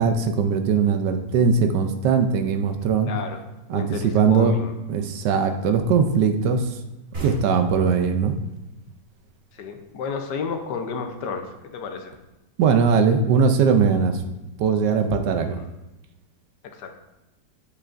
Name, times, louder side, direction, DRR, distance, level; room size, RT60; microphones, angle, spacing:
voice 1, 0.0-3.1 3.7-4.5 4.9-6.8 7.2-8.3 12.6-14.2 14.6-15.6, right 6 dB, 75° right, 7 dB, 1.2 m, -20 dB
voice 2, 3.1-3.4 3.7-4.7 9.5-12.1 16.7-16.9, left 5 dB, 70° left, 5 dB, 1.3 m, -31 dB
sound 1, 7.1-10.5, right 1 dB, 55° right, 2.4 m, -38 dB
8.2 x 5.6 x 2.5 m, 0.97 s
omnidirectional pair, 2.0 m